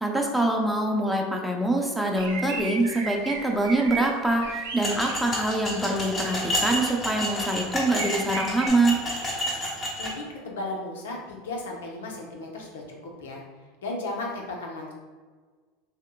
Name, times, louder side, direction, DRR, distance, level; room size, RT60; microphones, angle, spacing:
voice 1, 0.0-9.0, right 2 dB, ahead, 0 dB, 0.6 m, -25 dB
sound 1, 2.1-5.8 6.4-6.6 7.0-7.2 7.5-7.6 7.9-8.7, right 4 dB, 90° right, 0.8 m, -35 dB
sound 2, 4.8-10.1, left 1 dB, 30° left, 1.2 m, -30 dB
voice 2, 10.0-13.4 13.8-14.9, left 2 dB, 85° left, 0 dB, 0.7 m, -35 dB
6.3 x 2.1 x 2.3 m, 1.5 s
hypercardioid pair, 100°, 0 cm